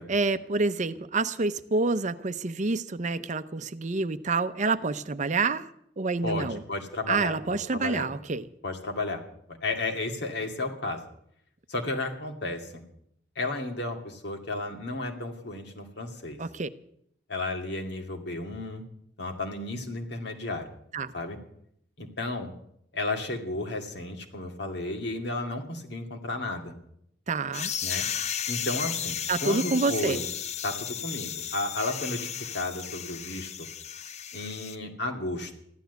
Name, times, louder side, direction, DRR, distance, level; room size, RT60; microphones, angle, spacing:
voice 1, 0.1-5.7 6.0-6.6 7.1-8.5 16.4-16.7 20.9-21.1 27.3-27.7 29.3-30.2, right 3 dB, 40° right, 12 dB, 0.7 m, -28 dB
voice 2, 6.2-8.1 8.6-9.2 9.5-11.0 11.7-12.8 13.4-16.4 17.3-18.8 19.2-20.7 21.1-21.4 22.0-22.5 22.9-26.7 27.8-28.0 28.5-30.2 30.6-33.7 34.3-35.5, left 2 dB, 65° left, 3 dB, 2.3 m, -33 dB
sound 1, 27.5-34.8, left 8 dB, 40° left, 0.6 m, -34 dB
14.5 x 12.0 x 8.1 m, 0.73 s
head